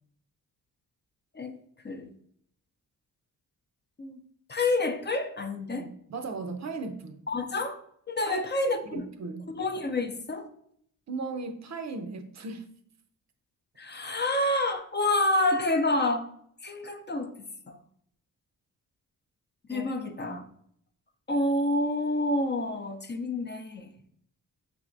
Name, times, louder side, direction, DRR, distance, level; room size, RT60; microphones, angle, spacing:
voice 1, 4.5-5.9 7.3-7.8 8.1-9.0 9.6-10.5 13.8-16.2 16.6-17.3 17.7-17.8 19.7-20.5 21.3-23.9, left 2 dB, 30° left, 6 dB, 0.5 m, -28 dB
voice 2, 5.8-7.2 8.3-9.5 11.1-12.7 19.7-19.9 20.2-20.4, right 4 dB, 50° right, 7 dB, 0.6 m, -37 dB
5.9 x 3.4 x 2.5 m, 0.67 s
cardioid pair, 80°, 36 cm